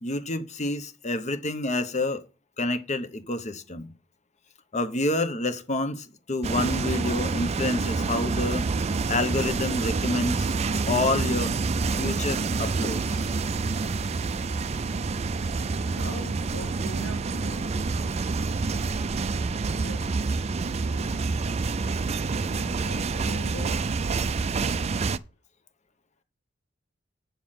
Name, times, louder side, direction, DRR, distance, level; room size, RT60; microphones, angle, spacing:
voice 1, 0.0-2.2 2.6-3.9 4.7-8.7 9.1-10.5 10.9-11.6 11.9-13.2, left 2 dB, 35° left, 0.9 m, -28 dB
sound 1, 6.4-25.2, right 4 dB, 35° right, 0.4 m, -27 dB
voice 2, 15.8-17.8 20.8-21.3 22.5-23.9, equal, 85° left, 2.2 m, -42 dB
8.8 x 6.9 x 5.9 m
head